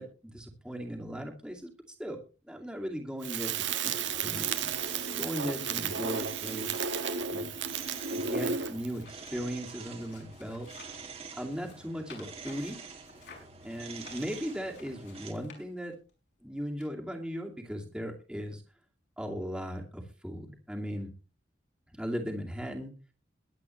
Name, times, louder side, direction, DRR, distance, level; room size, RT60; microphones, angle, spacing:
voice 1, 0.0-1.7 2.0-2.2 2.5-4.7 4.9-6.8 7.3-7.5 8.1-10.7 11.4-12.8 13.6-16.0 16.4-18.6 19.2-21.1 21.9-22.9, equal, 5° right, -1 dB, 2.4 m, -37 dB
Crackle, 3.2-8.9, right 6 dB, 80° right, 1.5 m, -33 dB
sound 1, 4.0-15.3, right 4 dB, 35° right, 2.0 m, -47 dB
sound 2, 7.5-11.1 11.5-16.1 16.8-16.9, left 4 dB, 65° left, 5.8 m, -55 dB
22.5 x 9.0 x 3.2 m, 0.34 s
head